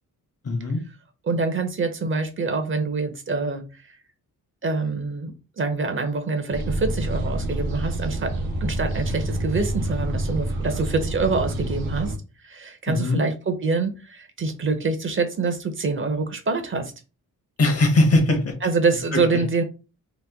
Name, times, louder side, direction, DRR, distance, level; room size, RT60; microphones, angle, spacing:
voice 1, 0.4-0.8 12.9-13.2 17.6-18.6 19.1-19.4, left 2 dB, 45° left, 0.9 m, -20 dB
voice 2, 1.2-3.9 4.6-12.1 12.4-16.9 18.6-19.6, right 4 dB, 35° right, 0.6 m, -25 dB
sound 1, 6.5-12.2, right 1 dB, 90° right, 0.8 m, -27 dB
2.9 x 2.1 x 3.4 m
cardioid pair, 100°, 34 cm